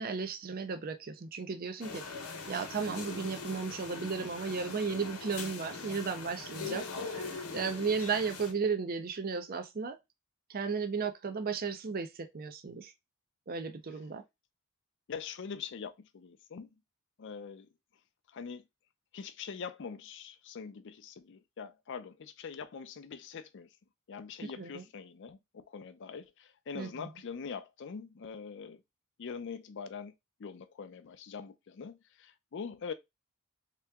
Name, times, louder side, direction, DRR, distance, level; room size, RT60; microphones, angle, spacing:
voice 1, 0.0-2.0 2.5-6.8 7.1-10.0 10.5-12.9 13.5-14.2 24.6-24.8 26.7-27.1, right 5 dB, 40° right, 0.5 m, -34 dB
sound 1, 1.8-8.5, left 4 dB, 80° left, 0.9 m, -41 dB
voice 2, 6.6-7.1 7.4-7.5 15.1-16.7 17.2-17.7 18.3-18.6 19.1-23.7 24.1-28.8 29.2-30.1 30.4-32.9, left 6 dB, 55° left, 0.4 m, -43 dB
3.3 x 2.9 x 3.4 m
head